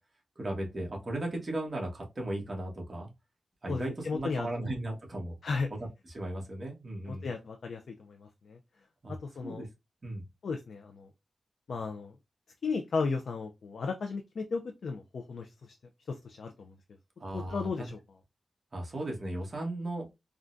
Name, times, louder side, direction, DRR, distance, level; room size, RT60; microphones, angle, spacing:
voice 1, 0.4-3.1 3.6-5.3 6.0-7.3 9.0-9.2 9.4-9.7 10.0-10.2 17.2-17.9 18.7-20.1, right 1 dB, 35° right, 1.3 m, -36 dB
voice 2, 3.7-4.7 5.4-5.7 7.1-8.6 9.1-9.7 10.4-11.1 11.7-12.1 12.6-15.7 16.1-16.7 17.3-18.0, left 4 dB, 75° left, 0.4 m, -35 dB
3.6 x 2.2 x 2.5 m
wide cardioid pair, 125°, 0 cm